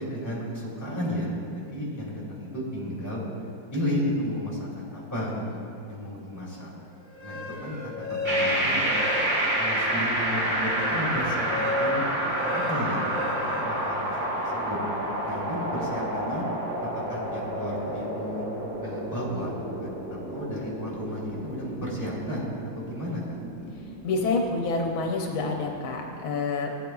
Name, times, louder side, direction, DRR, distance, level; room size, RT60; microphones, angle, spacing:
voice 1, 0.0-3.2 3.7-5.6 5.9-6.7 7.2-8.9 9.6-14.1 14.4-14.8 15.2-16.4 16.8-18.5 18.8-19.5 19.8-22.5 22.8-23.4, equal, 10° left, -6 dB, 2.5 m, -33 dB
sound 1, 7.0-9.7 10.1-14.5, left 2 dB, 65° right, 3.4 m, -33 dB
sound 2, 8.2-26.1, right 1 dB, 25° right, 2.5 m, -30 dB
voice 2, 24.0-26.7, left 3 dB, 75° left, 2 dB, 1.5 m, -27 dB
17.0 x 9.1 x 2.3 m, 2.5 s
omnidirectional pair, 2.2 m